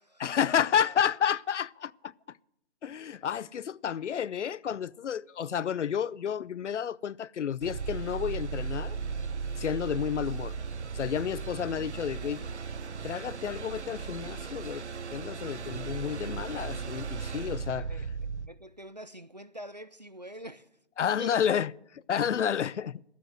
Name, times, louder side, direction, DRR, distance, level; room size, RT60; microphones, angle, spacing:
voice 1, 0.2-2.1 2.8-9.0 9.6-10.5 10.9-12.4 13.0-14.8 15.1-17.9 21.0-23.0, left 8 dB, 90° left, 0.5 m, -30 dB
sound 1, 7.6-18.5, right 5 dB, 80° right, 0.7 m, -36 dB
voice 2, 18.4-20.7 21.2-21.4, equal, 40° right, 0.4 m, -44 dB
12.0 x 8.3 x 7.7 m
figure-of-eight pair, 170°, 34 cm